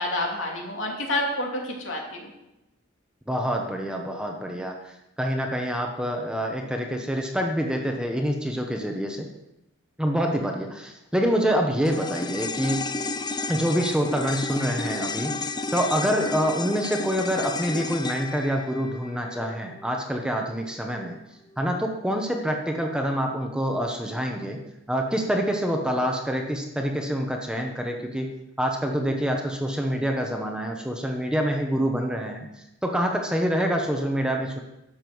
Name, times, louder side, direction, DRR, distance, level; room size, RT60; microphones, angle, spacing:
voice 1, 0.0-2.3, left 1 dB, 65° left, -1 dB, 2.9 m, -28 dB
voice 2, 3.3-9.3 10.0-12.8 13.5-21.1 21.6-24.6 24.9-28.3 28.6-32.5 32.8-34.6, equal, 5° right, 2 dB, 1.1 m, -26 dB
sound 1, 11.9-20.3 20.6-20.7, left 3 dB, 20° left, 0.5 m, -32 dB
12.0 x 7.5 x 6.3 m, 0.91 s
head